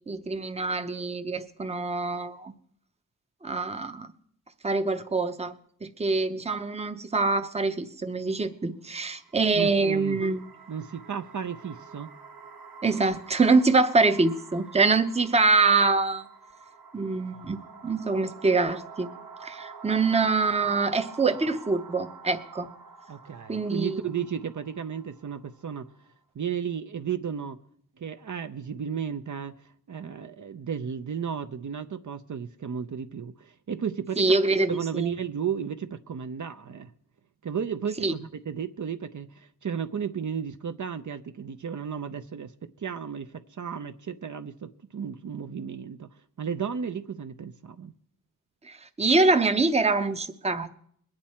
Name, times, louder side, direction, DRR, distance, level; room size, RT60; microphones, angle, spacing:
voice 1, 0.1-2.5 3.4-4.1 4.6-5.5 5.8-10.4 12.8-16.3 16.9-17.6 17.8-19.1 19.4-22.7 23.5-24.0 34.2-35.1 38.0-38.1 48.6-50.7, right 3 dB, 20° right, 0.7 m, -24 dB
sound 1, 9.0-26.1, right 5 dB, 85° right, 1.3 m, -48 dB
voice 2, 9.5-10.2 10.7-12.1 23.1-25.9 26.3-27.6 28.0-34.4 34.7-36.9 37.4-47.9, right 7 dB, 60° right, 0.6 m, -34 dB
22.0 x 8.9 x 4.3 m
wide cardioid pair, 110°, 34 cm